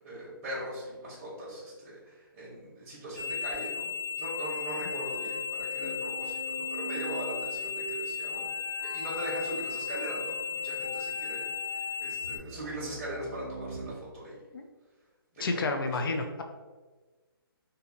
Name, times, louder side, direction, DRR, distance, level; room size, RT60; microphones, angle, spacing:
voice 1, 0.0-8.5 8.8-14.4 15.5-16.4, right 1 dB, 10° right, -6 dB, 0.8 m, -40 dB
sound 1, 3.2-12.4, left 7 dB, 30° left, 1.3 m, -35 dB
sound 2, 4.3-13.9, equal, 10° left, 1.1 m, -43 dB
voice 2, 15.4-16.4, left 3 dB, 65° left, 4 dB, 0.4 m, -30 dB
2.6 x 2.6 x 3.9 m, 1.3 s
hypercardioid pair, 170°, 13 cm